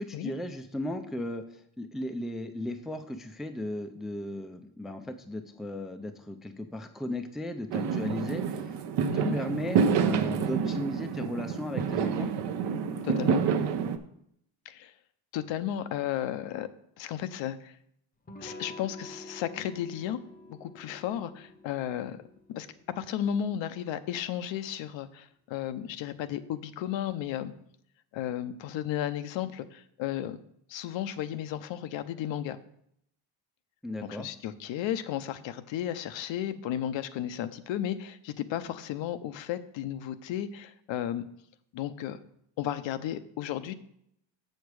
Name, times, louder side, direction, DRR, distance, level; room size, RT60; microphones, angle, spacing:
voice 1, 0.0-8.8 9.1-12.3 33.8-34.3, left 1 dB, ahead, 6 dB, 0.3 m, -36 dB
Fireworks, 7.7-14.0, right 6 dB, 65° right, 0.8 m, -28 dB
voice 2, 13.0-13.4 14.6-14.9 15.3-16.7 17.0-17.8 18.4-20.2 20.5-22.2 22.5-22.7 23.0-27.5 28.1-30.4 30.7-32.6 34.0-41.3 41.7-42.2 42.6-43.7, left 11 dB, 80° left, 11 dB, 0.7 m, -34 dB
Electric guitar / Strum, 18.3-23.6, left 1 dB, 20° left, 0.7 m, -48 dB
7.1 x 6.6 x 4.8 m, 0.71 s
cardioid pair, 140°, 45 cm